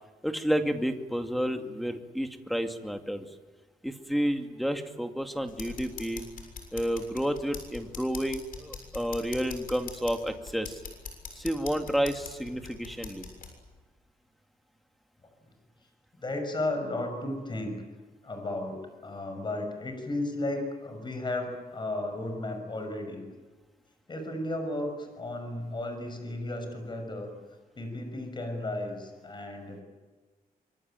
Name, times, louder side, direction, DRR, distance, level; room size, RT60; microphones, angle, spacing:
voice 1, 0.2-3.2 3.8-6.2 6.7-10.8 11.3-13.3, equal, ahead, 5 dB, 2.3 m, -30 dB
sound 1, 5.5-13.5, left 5 dB, 65° left, 6.9 m, -43 dB
voice 2, 16.2-17.8 18.2-23.2 24.1-27.3 27.8-29.8, left 1 dB, 30° left, 5 dB, 6.3 m, -34 dB
25.0 x 24.5 x 9.1 m, 1.3 s
cardioid pair, 125°, 16 cm